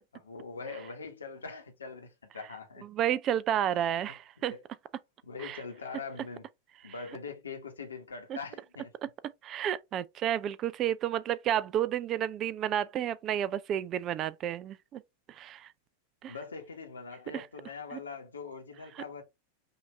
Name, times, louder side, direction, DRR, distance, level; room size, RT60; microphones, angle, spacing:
voice 1, 0.1-2.9 3.7-4.1 4.4-4.6 5.2-6.5 6.8-8.9 16.3-19.2, left 4 dB, 70° left, 1.2 m, -42 dB
voice 2, 2.9-4.5 5.4-5.6 6.8-6.9 8.3-8.4 9.0-9.1 9.4-15.0 15.3-15.7 16.2-16.3 17.3-17.5 17.9-18.0 18.9-19.0, right 10 dB, 30° right, 0.3 m, -31 dB
5.6 x 2.6 x 3.3 m
figure-of-eight pair, 90°, 0 cm